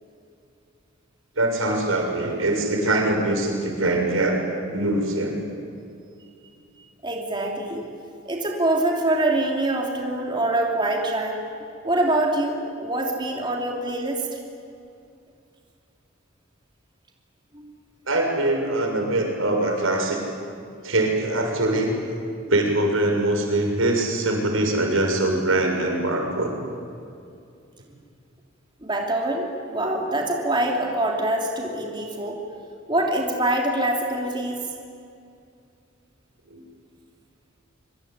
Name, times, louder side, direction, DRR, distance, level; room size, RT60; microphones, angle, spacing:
voice 1, 1.4-4.4 4.7-5.4 18.1-20.2 20.8-21.9 22.5-26.5 36.5-36.6, right 2 dB, 90° right, 2 dB, 6.6 m, -23 dB
voice 2, 7.0-7.8 8.2-11.4 11.8-14.4 17.5-17.7 28.8-32.4 32.9-34.6, right 1 dB, 25° right, 0 dB, 3.3 m, -24 dB
25.0 x 24.5 x 9.6 m, 2.4 s
head